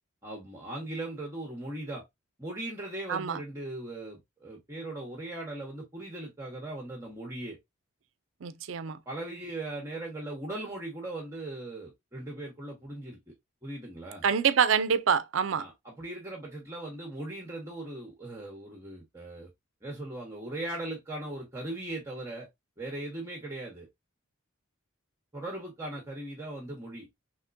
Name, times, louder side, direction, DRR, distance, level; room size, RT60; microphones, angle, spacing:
voice 1, 0.2-2.0 2.4-7.6 9.1-13.3 13.6-14.2 15.6-19.5 19.8-22.5 22.8-23.9 25.3-27.1, right 1 dB, 15° right, 0.9 m, -39 dB
voice 2, 3.1-3.4 8.4-9.0 14.2-15.7, right 7 dB, 75° right, 0.4 m, -26 dB
3.6 x 3.0 x 2.5 m
head